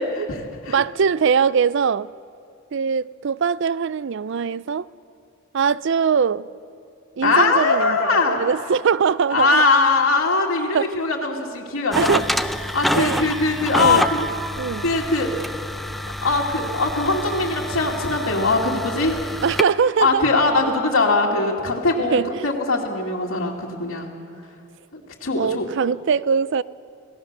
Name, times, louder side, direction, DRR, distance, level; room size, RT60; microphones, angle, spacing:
voice 1, 0.7-2.1 2.7-4.9 5.5-6.5 7.2-9.6 10.7-10.9 11.9-12.3 12.9-13.3 13.8-14.1 14.6-14.9 19.4-20.2 20.6-20.7 22.0-22.5 25.4-26.6, right 6 dB, 60° right, 0.4 m, -22 dB
voice 2, 7.2-8.4 9.3-12.2 12.7-14.3 14.8-15.3 16.2-19.2 20.0-24.1 24.9-25.7, left 3 dB, 80° left, 2.3 m, -21 dB
sound 1, 11.9-19.6, equal, ahead, 0.5 m, -27 dB
27.0 x 17.5 x 6.7 m
head